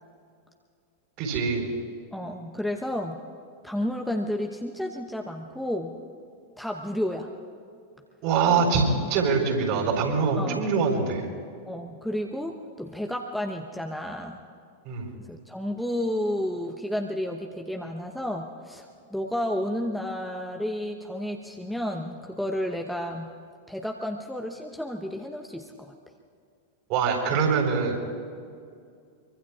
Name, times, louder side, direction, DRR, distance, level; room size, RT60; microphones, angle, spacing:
voice 1, 1.2-1.7 8.2-11.3 14.9-15.1 26.9-28.0, right 5 dB, 45° right, 2 dB, 4.0 m, -24 dB
voice 2, 2.1-3.2 3.6-6.0 6.6-7.3 10.4-10.7 11.7-14.4 15.3-23.3 23.7-25.9, left 1 dB, ahead, 2 dB, 0.9 m, -31 dB
25.0 x 24.0 x 2.4 m, 2.3 s
figure-of-eight pair, 90°, 0 cm